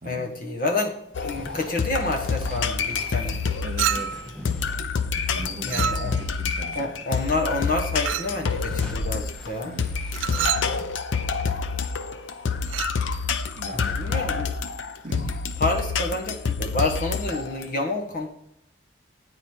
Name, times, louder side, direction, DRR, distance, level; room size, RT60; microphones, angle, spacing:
voice 1, 0.0-3.5 5.6-6.2 6.7-9.7 13.7-14.6 15.6-18.3, left 2 dB, 45° left, 2 dB, 1.3 m, -28 dB
sound 1, 1.1-17.7, left 5 dB, 75° left, 0.6 m, -28 dB
sound 2, 1.3-6.4 6.7-7.6 8.1-11.0, equal, 5° left, 0.8 m, -42 dB
voice 2, 3.6-4.2 5.3-6.9 9.6-9.9 10.2-10.8 13.3-14.0 15.0-15.4, right 1 dB, 40° right, 5 dB, 0.7 m, -39 dB
Chink clink, 3.8-4.3 5.7-6.4 8.1-8.4 10.1-10.7 12.6-13.0, right 10 dB, 75° right, 0.3 m, -28 dB
8.8 x 4.9 x 4.4 m, 0.77 s
head